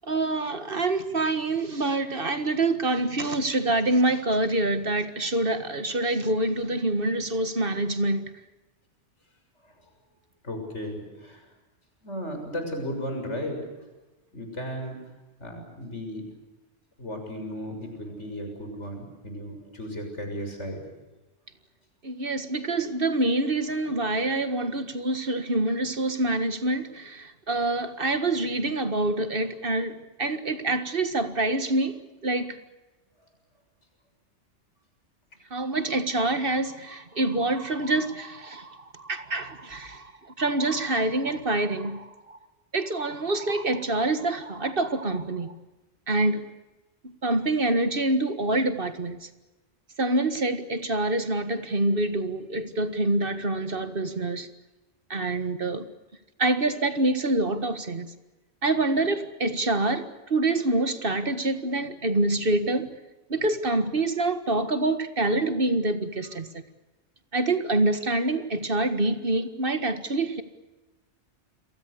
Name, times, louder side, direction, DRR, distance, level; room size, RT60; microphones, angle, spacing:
voice 1, 0.1-8.3 22.0-31.9 32.2-32.6 35.5-40.1 40.4-42.4 42.7-45.5 46.1-46.4 47.0-49.2 50.0-54.5 55.1-55.9 56.4-58.1 58.6-62.9 63.3-66.6 67.3-70.4, right 2 dB, 50° right, 2.0 m, -26 dB
voice 2, 10.4-11.4 12.0-13.6 14.3-15.0 15.4-16.2 17.0-20.8, equal, 85° left, 7.2 m, -35 dB
29.5 x 23.0 x 6.9 m
omnidirectional pair, 1.2 m